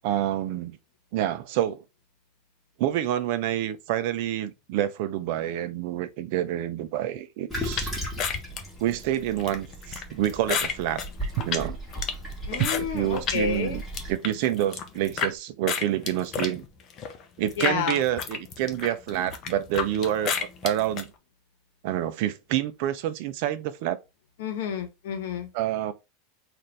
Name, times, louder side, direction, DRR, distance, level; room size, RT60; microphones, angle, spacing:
voice 1, 0.0-0.8 1.1-1.8 2.8-7.9 8.8-11.8 12.5-16.6 17.4-21.1 21.8-24.0 25.5-25.9, right 12 dB, 50° right, 0.5 m, -28 dB
Toilet flush, 7.5-14.1, equal, ahead, 1.4 m, -36 dB
sound 1, 7.8-13.4 13.8-15.3 15.7-21.1, left 7 dB, 30° left, 0.6 m, -32 dB
voice 2, 12.5-13.8 17.6-18.0 24.4-25.5, left 6 dB, 70° left, 1.0 m, -30 dB
4.2 x 2.5 x 3.2 m
supercardioid pair, 170°, 0 cm